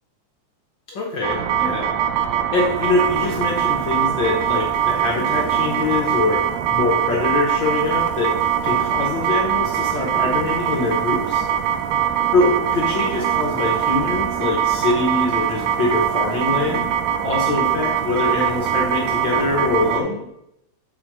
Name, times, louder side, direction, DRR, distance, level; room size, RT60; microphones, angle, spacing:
voice 1, 0.9-1.9 2.5-6.4 6.7-8.3 8.6-11.4 12.3-16.8 17.2-20.3, left 3 dB, 70° left, -2 dB, 1.1 m, -23 dB
sound 1, 1.2-20.0, right 9 dB, 75° right, 1.8 m, -22 dB
7.8 x 4.5 x 6.1 m, 0.82 s
omnidirectional pair, 3.7 m